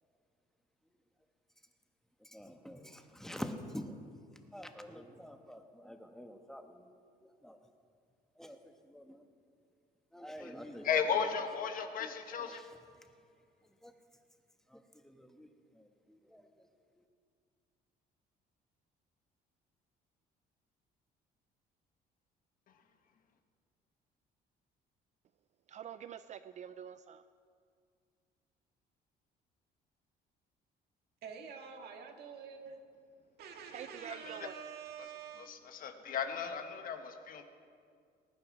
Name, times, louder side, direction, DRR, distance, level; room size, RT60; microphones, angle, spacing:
voice 1, 2.3-3.9 4.5-6.9 7.4-7.6 8.4-8.6 8.9-9.2 10.1-11.0 11.8-12.5 13.8-13.9 14.7-14.8 15.0-15.5 16.3-16.4, equal, 5° left, 6 dB, 1.2 m, -46 dB
voice 2, 10.4-12.6 34.0-34.5 35.4-37.5, left 7 dB, 55° left, 6 dB, 1.4 m, -36 dB
voice 3, 25.7-27.2 33.7-34.6, right 9 dB, 45° right, 12 dB, 0.4 m, -46 dB
voice 4, 31.2-32.8 33.4-35.5, right 7 dB, 70° right, 4 dB, 1.8 m, -47 dB
19.5 x 9.6 x 6.1 m, 2.2 s
cardioid pair, 110°, 17 cm